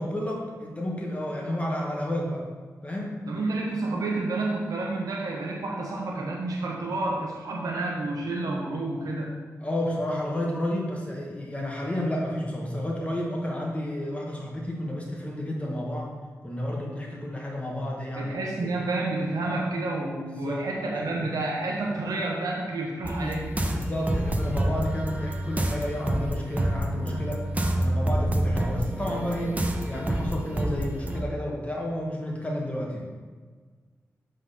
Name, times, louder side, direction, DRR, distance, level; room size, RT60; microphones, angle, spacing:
voice 1, 0.0-2.5 2.8-3.2 9.6-16.1 16.4-18.7 20.3-21.2 23.2-27.5 27.8-33.1, left 1 dB, 20° left, -2 dB, 1.4 m, -31 dB
voice 2, 3.3-9.3 18.2-23.5, right 2 dB, 80° right, -1 dB, 1.0 m, -29 dB
sound 1, 23.0-31.2, right 1 dB, 25° right, 0.7 m, -28 dB
7.5 x 3.8 x 4.1 m, 1.5 s
cardioid pair, 55°, 6 cm